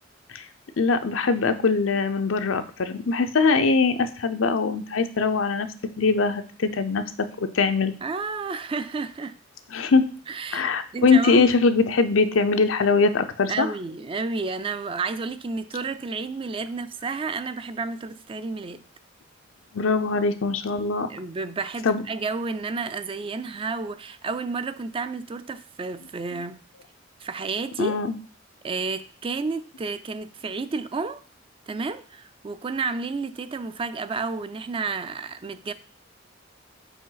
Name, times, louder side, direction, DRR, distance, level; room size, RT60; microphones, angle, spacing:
voice 1, 0.8-5.7 6.0-7.0 7.4-7.9 9.7-10.1 10.5-13.7 19.7-21.1 21.8-22.0 27.8-28.1, left 4 dB, 90° left, 0.6 m, -22 dB
voice 2, 8.0-9.4 10.3-10.7 10.9-11.5 13.5-18.8 21.1-26.6 27.2-27.9 28.6-31.2 31.7-35.7, right 4 dB, 25° right, 0.3 m, -31 dB
5.0 x 4.8 x 3.9 m
head